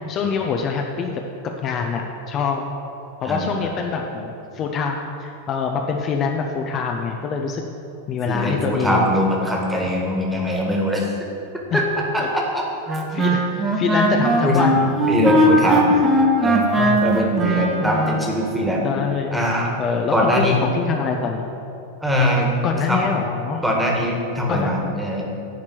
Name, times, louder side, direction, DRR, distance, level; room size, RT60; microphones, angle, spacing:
voice 1, 0.1-1.2 1.6-2.7 3.2-7.6 8.1-9.1 11.7-11.8 12.2-12.3 13.1-13.5 13.7-14.8 15.3-15.4 15.9-16.0 16.8-17.0 18.8-19.4 19.8-21.5 22.6-23.6 24.5-24.7, left 6 dB, 30° left, 2 dB, 0.6 m, -24 dB
voice 2, 3.2-3.7 8.3-11.1 11.7-11.8 12.1-12.6 14.4-15.8 16.4-16.7 17.0-18.9 19.3-19.7 20.1-20.6 22.0-22.5 22.9-23.0 23.6-25.2, equal, 5° right, -2 dB, 1.7 m, -22 dB
Wind instrument woodwind instrument, 12.9-18.2, right 1 dB, 20° right, 1.2 m, -19 dB
10.0 x 4.4 x 7.6 m, 3.0 s
figure-of-eight pair, 90°, 0 cm